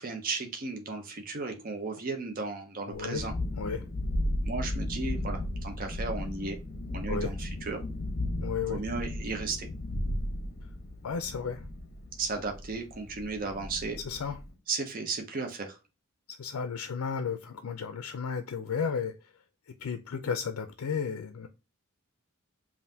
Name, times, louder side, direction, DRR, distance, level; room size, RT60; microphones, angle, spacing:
voice 1, 0.0-3.3 4.4-6.6 6.9-7.8 8.7-9.7 12.2-14.0 14.7-15.8, right 4 dB, 40° right, 4 dB, 0.6 m, -35 dB
voice 2, 2.9-3.3 3.6-3.9 7.1-7.3 8.4-8.8 10.6-10.7 11.0-11.7 14.0-14.4 16.3-21.5, left 6 dB, 70° left, 8 dB, 0.4 m, -34 dB
Thunderstorm, 2.9-14.5, left 1 dB, 45° left, 0.8 m, -35 dB
5.3 x 2.5 x 2.7 m, 0.29 s
head